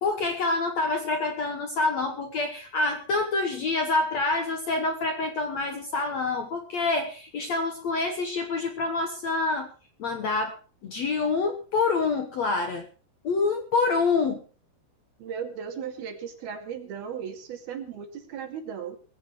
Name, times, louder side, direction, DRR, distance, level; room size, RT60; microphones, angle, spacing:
voice 1, 0.0-9.7 10.0-12.9 13.2-14.4, left 3 dB, 60° left, 6 dB, 2.0 m, -27 dB
voice 2, 15.2-19.0, right 7 dB, 65° right, 5 dB, 4.3 m, -36 dB
21.0 x 16.0 x 3.2 m, 0.34 s
omnidirectional pair, 4.8 m